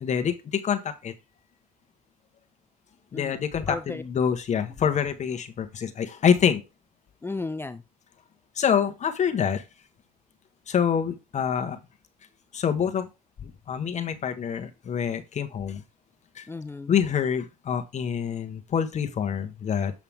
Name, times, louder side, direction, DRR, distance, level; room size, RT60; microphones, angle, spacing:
voice 1, 0.0-1.1 3.1-6.6 8.6-9.6 10.7-11.8 12.5-13.1 13.4-15.8 16.3-16.5 16.9-19.9, left 7 dB, 45° left, 1.2 m, -26 dB
voice 2, 3.1-4.0 7.2-7.8 16.5-16.9, left 3 dB, 15° left, 0.5 m, -35 dB
7.3 x 5.8 x 3.5 m
cardioid pair, 110°, 17 cm